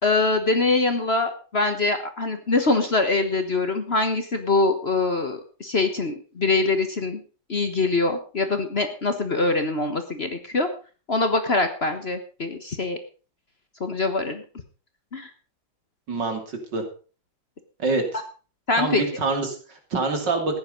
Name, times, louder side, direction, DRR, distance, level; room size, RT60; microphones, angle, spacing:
voice 1, 0.0-7.2 7.5-10.7 11.1-13.0 13.8-14.4 15.1-15.3 18.7-19.0, left 3 dB, 35° left, 7 dB, 1.4 m, -23 dB
voice 2, 16.1-16.8 17.8-18.2 18.8-20.6, right 3 dB, 70° right, 4 dB, 3.4 m, -26 dB
14.5 x 10.5 x 5.3 m, 0.37 s
omnidirectional pair, 2.0 m